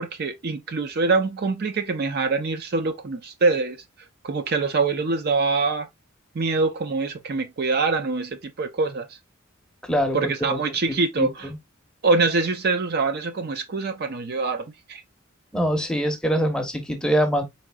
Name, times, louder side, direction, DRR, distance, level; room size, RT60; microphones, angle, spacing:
voice 1, 0.0-3.8 4.2-5.9 6.3-9.1 10.1-11.5 12.0-15.0, right 3 dB, 50° right, 0.5 m, -24 dB
voice 2, 9.9-10.2 10.5-10.6 11.2-11.6 15.5-17.4, equal, 5° left, 0.7 m, -23 dB
4.2 x 3.7 x 2.2 m
head